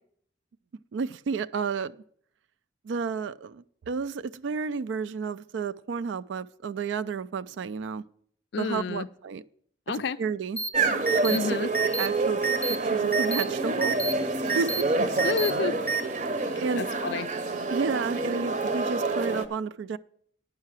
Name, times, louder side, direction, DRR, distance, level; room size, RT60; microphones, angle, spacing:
voice 1, 0.9-1.9 2.8-8.0 8.6-9.4 10.2-10.6 11.2-12.4 12.7-14.0 14.5-14.8 16.6-16.8 17.7-20.0, right 5 dB, 75° right, 15 dB, 0.3 m, -31 dB
voice 2, 8.5-9.1 9.9-10.2 11.3-11.7 15.2-15.7 16.4-17.3, left 5 dB, 65° left, 13 dB, 0.4 m, -30 dB
sound 1, 10.6-10.7 11.1-11.4 11.7-12.1 12.4-12.8 13.1-13.4 13.8-14.1 14.5-14.8 15.2-15.5 15.9-16.0, right 5 dB, 10° left, 0.5 m, -28 dB
sound 2, 10.7-19.5, right 3 dB, 40° right, 0.7 m, -28 dB
9.7 x 5.7 x 7.4 m, 0.63 s
head